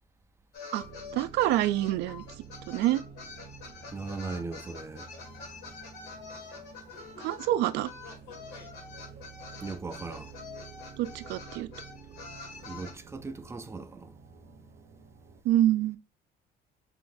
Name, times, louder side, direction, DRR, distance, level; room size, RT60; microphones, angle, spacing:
sound 1, 0.5-12.9, left 4 dB, 75° left, 2.0 m, -46 dB
sound 2, 0.8-15.4, right 6 dB, 55° right, 0.7 m, -50 dB
voice 1, 1.1-2.2 2.7-3.0 7.2-7.9 11.0-11.7 15.4-16.0, right 13 dB, 85° right, 0.4 m, -26 dB
voice 2, 3.9-5.1 9.6-10.3 12.7-14.1, right 4 dB, 15° right, 0.5 m, -38 dB
4.4 x 3.8 x 2.6 m
cardioid pair, 110°, 17 cm